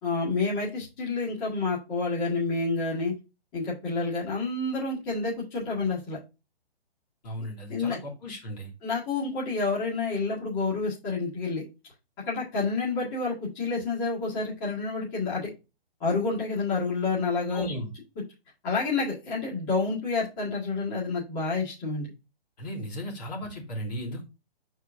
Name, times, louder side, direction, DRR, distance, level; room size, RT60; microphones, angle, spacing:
voice 1, 0.0-3.1 3.5-6.2 7.7-8.0 8.8-11.6 12.2-15.5 16.0-17.7 18.6-22.1, left 3 dB, 20° left, -8 dB, 2.1 m, -29 dB
voice 2, 7.2-8.7 17.5-17.9 22.6-24.2, equal, 40° left, -1 dB, 2.6 m, -35 dB
6.7 x 4.7 x 3.5 m, 0.27 s
hypercardioid pair, 165°, 31 cm